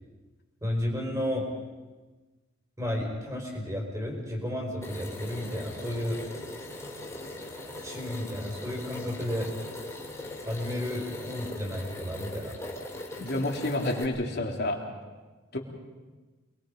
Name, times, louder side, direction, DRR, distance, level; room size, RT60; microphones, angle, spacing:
voice 1, 0.6-1.5 2.8-6.2 7.8-9.5 10.4-12.5, left 1 dB, 15° right, 1 dB, 4.8 m, -32 dB
sound 1, 4.8-14.0, left 1 dB, 15° left, 3.8 m, -40 dB
voice 2, 13.2-14.8 15.5-15.6, left 1 dB, 55° left, 1 dB, 3.1 m, -29 dB
27.5 x 21.5 x 5.2 m, 1.3 s
head